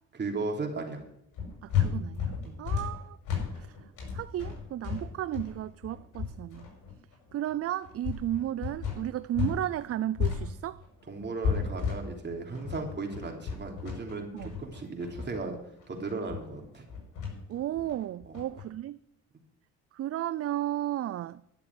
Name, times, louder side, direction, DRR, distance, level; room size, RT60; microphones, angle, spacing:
voice 1, 0.1-1.0 2.4-2.6 11.1-15.6 15.9-16.8 18.2-18.3, right 3 dB, 35° right, 3.4 m, -36 dB
sound 1, 1.3-9.6 9.9-18.6, left 7 dB, 90° left, 5.7 m, -33 dB
voice 2, 1.6-3.2 3.6-3.7 4.1-6.7 7.3-10.8 14.3-14.6 17.5-19.0 19.9-21.4, right 12 dB, 50° right, 0.5 m, -34 dB
12.0 x 7.0 x 9.7 m
cardioid pair, 90°, 30 cm